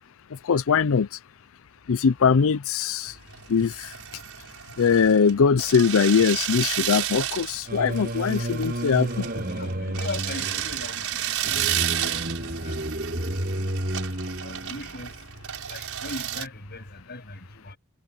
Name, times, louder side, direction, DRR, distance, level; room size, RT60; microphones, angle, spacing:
voice 1, 0.3-1.2 1.9-3.2 3.5-3.9 4.8-9.3, left 6 dB, 65° left, 0.5 m, -21 dB
sound 1, 3.1-16.5, right 11 dB, 70° right, 6.7 m, -32 dB
Singing, 7.7-15.0, right 1 dB, 45° right, 7.6 m, -31 dB
voice 2, 9.3-11.6 12.1-12.8 14.4-15.2 15.7-17.8, left 2 dB, 50° left, 7.3 m, -39 dB
head